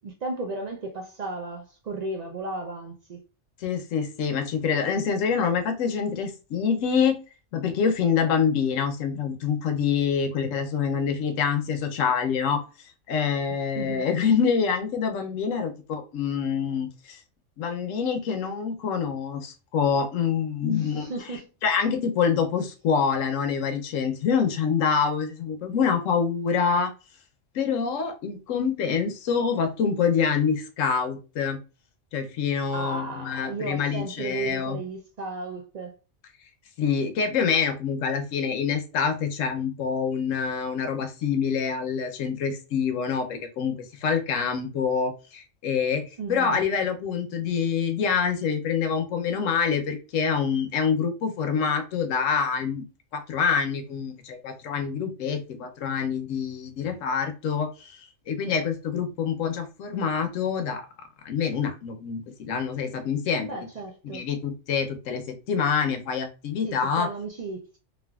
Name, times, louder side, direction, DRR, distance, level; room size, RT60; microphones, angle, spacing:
voice 1, 0.0-3.2 13.8-14.0 20.7-21.4 32.7-35.9 46.2-46.6 63.4-64.3 66.6-67.8, right 3 dB, 80° right, 0.3 m, -34 dB
voice 2, 3.6-7.2 7.5-12.6 13.1-17.2 17.6-21.1 21.6-26.9 27.5-31.6 32.1-34.8 36.8-52.8 53.1-58.0 58.3-60.9 61.2-63.5 64.0-67.1, left 6 dB, 80° left, 1.0 m, -26 dB
3.3 x 2.4 x 2.2 m
omnidirectional pair, 1.3 m